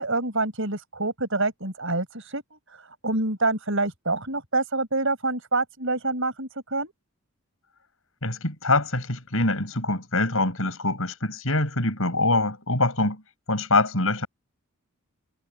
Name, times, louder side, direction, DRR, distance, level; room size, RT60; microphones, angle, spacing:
voice 1, 0.0-6.9, right 2 dB, 60° right, 6.4 m, -27 dB
voice 2, 8.2-13.2 13.5-14.3, left 2 dB, 70° left, 6.7 m, -24 dB
head